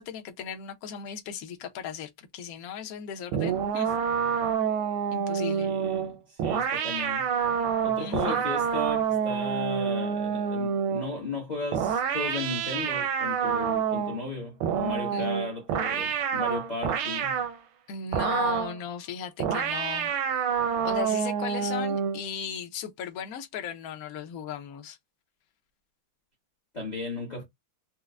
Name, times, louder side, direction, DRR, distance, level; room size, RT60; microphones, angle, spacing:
voice 1, 0.0-3.9 5.1-5.7 8.0-8.4 15.1-15.3 17.9-20.1 20.8-25.0, left 7 dB, 75° left, 0.8 m, -37 dB
sound 1, 3.3-11.1 11.7-14.2 14.6-17.6 18.1-18.8 19.4-22.2, right 7 dB, 85° right, 1.5 m, -27 dB
voice 2, 5.6-7.3 7.8-17.4 26.7-27.4, left 2 dB, 35° left, 0.7 m, -35 dB
4.3 x 2.1 x 2.4 m
omnidirectional pair, 2.4 m